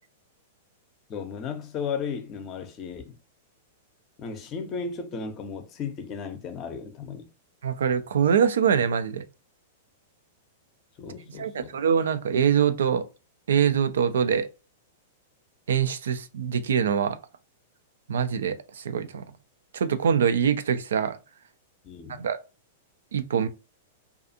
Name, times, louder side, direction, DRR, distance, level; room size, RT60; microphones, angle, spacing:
voice 1, 1.1-3.2 4.2-7.2 11.0-11.7 21.8-22.2, left 5 dB, 35° left, 0.6 m, -35 dB
voice 2, 7.6-9.2 11.4-13.1 13.5-14.5 15.7-17.2 18.1-19.2 19.7-21.2 22.2-22.4 23.1-23.5, right 7 dB, 75° right, 0.3 m, -24 dB
2.4 x 2.4 x 2.7 m
hypercardioid pair, 105°, 0 cm